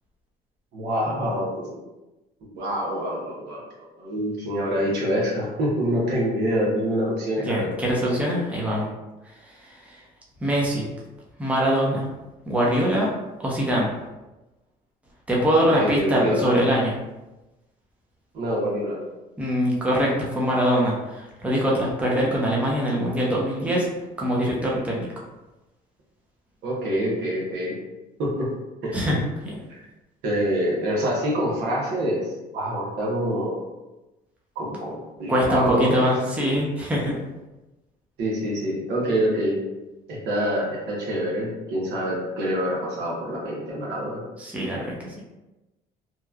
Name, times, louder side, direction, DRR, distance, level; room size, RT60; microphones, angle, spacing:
voice 1, 0.7-1.8 2.5-7.7 15.7-16.5 18.3-19.0 26.6-27.8 28.2-28.5 28.8-28.9 30.2-33.6 34.5-36.0 38.2-39.6 40.1-44.2, equal, 80° right, -4 dB, 1.0 m, -26 dB
voice 2, 7.4-8.9 9.2-10.0 10.4-10.8 11.4-12.1 12.5-13.1 13.4-13.9 15.3-16.9 19.4-23.9 24.2-25.1 28.9-29.2 29.4-29.6 35.3-37.1 44.4-45.1, equal, 10° right, -4 dB, 0.7 m, -23 dB
3.0 x 2.3 x 2.3 m, 1.0 s
cardioid pair, 110°, 17 cm